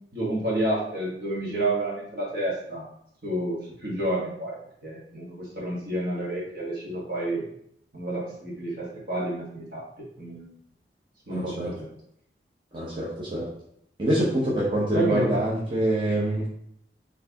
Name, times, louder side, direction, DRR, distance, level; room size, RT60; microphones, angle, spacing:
voice 1, 0.1-2.8 3.2-4.6 4.8-7.5 7.9-9.8 10.2-10.5 11.3-11.5 11.8-11.9 14.9-15.3, right 1 dB, 60° right, -5 dB, 1.5 m, -29 dB
voice 2, 11.3-11.7 12.7-13.5 14.0-16.5, right 1 dB, 30° right, -6 dB, 0.9 m, -25 dB
4.5 x 3.3 x 2.9 m, 0.71 s
head